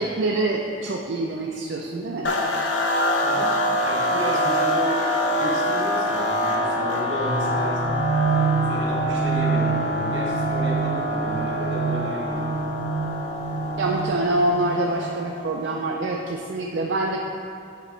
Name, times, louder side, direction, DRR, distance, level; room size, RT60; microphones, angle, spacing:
voice 1, 0.0-2.3 13.8-17.2, right 2 dB, 70° right, 0 dB, 0.4 m, -25 dB
sound 1, 2.2-15.6, left 1 dB, 80° left, 0.6 m, -25 dB
voice 2, 3.2-5.1 5.3-7.9 8.6-12.5, equal, 85° right, -3 dB, 1.3 m, -32 dB
sound 2, 7.2-15.0, right 5 dB, 50° left, 1.5 m, -27 dB
7.3 x 3.0 x 5.0 m, 2.5 s
head